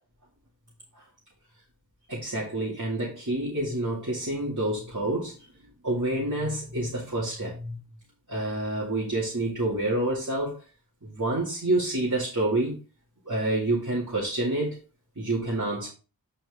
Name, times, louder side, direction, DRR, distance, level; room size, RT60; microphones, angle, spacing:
voice 1, 2.1-5.5 5.8-7.8 8.3-10.6 11.0-12.7 13.3-14.8 15.2-15.9, right 1 dB, 55° right, -5 dB, 2.4 m, -28 dB
9.0 x 4.4 x 3.7 m, 0.33 s
wide cardioid pair, 45°, 36 cm